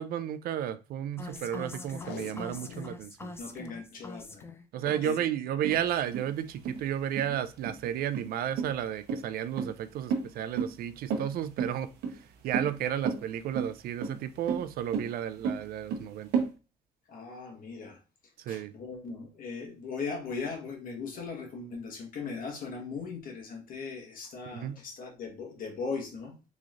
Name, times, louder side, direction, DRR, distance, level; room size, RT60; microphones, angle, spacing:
voice 1, 0.0-3.3 4.7-16.5 18.4-18.7 24.5-24.8, right 10 dB, 60° right, 0.4 m, -33 dB
sound 1, 1.2-5.5 5.7-6.1, left 2 dB, 15° left, 0.4 m, -44 dB
Packing tape duct tape, 1.9-3.0 3.4-3.7 4.3-4.6 5.6-5.9 6.5-6.6, left 8 dB, 80° left, 0.4 m, -46 dB
voice 2, 3.4-4.4 4.8-5.3 17.1-18.0 18.5-26.4, left 4 dB, 55° left, 1.2 m, -39 dB
sound 2, 5.6-16.5, right 6 dB, 80° right, 0.7 m, -33 dB
3.7 x 3.1 x 2.4 m
cardioid pair, 110°, 17 cm